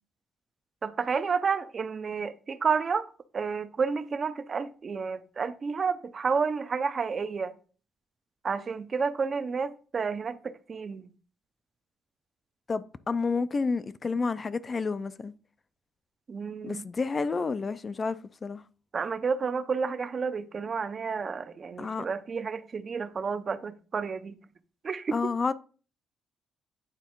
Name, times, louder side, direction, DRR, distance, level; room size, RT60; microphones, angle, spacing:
voice 1, 0.8-3.0 3.3-7.5 8.4-11.1 16.3-16.8 18.9-24.4 24.8-25.1, right 5 dB, 45° right, 0.6 m, -30 dB
voice 2, 12.7-15.3 16.6-18.2 18.4-18.6 21.8-22.1 25.1-25.5, left 4 dB, 35° left, 0.4 m, -30 dB
9.0 x 3.4 x 4.5 m
cardioid pair, 90°, 0 cm